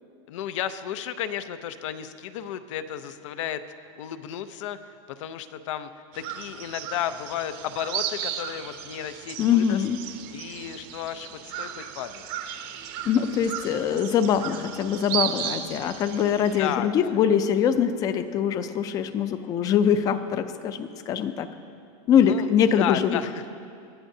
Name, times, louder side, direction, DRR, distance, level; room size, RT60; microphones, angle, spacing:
voice 1, 0.3-5.9 6.1-9.8 10.3-12.3 16.6-17.2 22.2-22.5 22.8-23.4, left 10 dB, 85° left, 11 dB, 0.6 m, -33 dB
sound 1, 6.1-16.8, right 10 dB, 50° right, 0.7 m, -35 dB
voice 2, 9.4-10.0 13.1-21.5 22.1-23.2, left 8 dB, 25° left, 11 dB, 0.4 m, -23 dB
20.0 x 11.5 x 2.7 m, 2.3 s
supercardioid pair, 175°, 16 cm